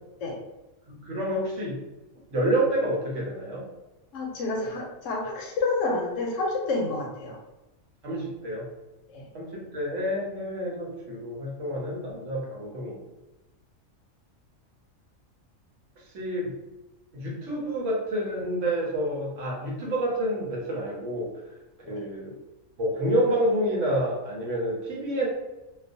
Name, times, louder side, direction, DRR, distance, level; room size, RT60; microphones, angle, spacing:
voice 1, 0.9-1.8 2.3-3.6 8.0-8.7 9.3-13.0 16.1-16.5 17.1-21.3 21.9-22.3 22.8-25.3, right 1 dB, 70° right, -3 dB, 1.0 m, -28 dB
voice 2, 4.1-7.4 9.1-9.3 21.8-22.0, left 3 dB, 70° left, 0 dB, 0.9 m, -29 dB
2.3 x 2.3 x 2.5 m, 1.0 s
omnidirectional pair, 1.4 m